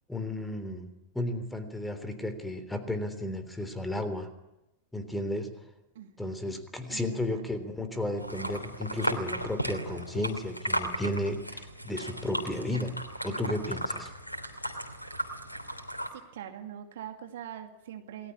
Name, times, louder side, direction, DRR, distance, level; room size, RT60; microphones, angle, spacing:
voice 1, 0.1-0.9 1.2-4.3 4.9-5.5 6.2-14.1, left 1 dB, 5° left, 10 dB, 3.5 m, -33 dB
voice 2, 5.9-6.3 6.9-7.4 16.1-18.3, right 10 dB, 60° right, 6 dB, 2.4 m, -43 dB
sound 1, 8.2-16.1, equal, 90° left, 2.9 m, -35 dB
28.5 x 20.5 x 9.7 m, 0.95 s
figure-of-eight pair, 90°, 0 cm